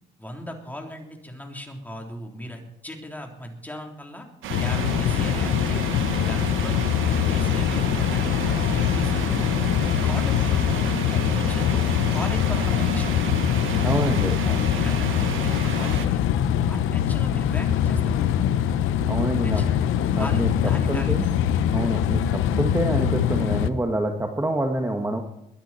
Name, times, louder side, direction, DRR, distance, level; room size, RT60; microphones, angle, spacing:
voice 1, 0.2-4.3 4.6-5.8 6.1-9.5 9.9-11.8 12.1-13.3 14.4-14.6 14.8-16.2 16.7-18.3 19.4-19.7 20.2-21.1, left 1 dB, 10° left, 2 dB, 3.6 m, -38 dB
sound 1, 4.4-16.1, right 9 dB, 80° right, 1.2 m, -32 dB
sound 2, 4.5-23.7, left 9 dB, 90° left, 0.9 m, -23 dB
voice 2, 13.8-14.4 19.1-19.7 20.1-20.5 20.9-21.3 21.7-25.2, right 1 dB, 10° right, 4 dB, 1.6 m, -26 dB
22.5 x 10.0 x 4.4 m, 0.81 s
cardioid pair, 90°, 20 cm